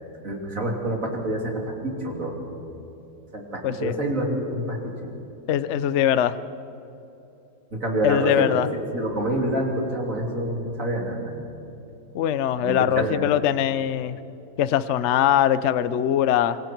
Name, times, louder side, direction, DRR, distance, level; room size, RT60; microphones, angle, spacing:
voice 1, 0.2-1.5 1.8-2.4 3.3-5.1 7.7-8.6 8.9-11.3 12.6-13.2, right 1 dB, 40° right, 0 dB, 3.5 m, -27 dB
voice 2, 3.6-3.9 5.5-6.4 8.0-8.7 12.1-14.2 14.6-16.6, left 10 dB, 75° left, 14 dB, 0.6 m, -22 dB
26.5 x 23.5 x 4.6 m, 2.8 s
omnidirectional pair, 2.1 m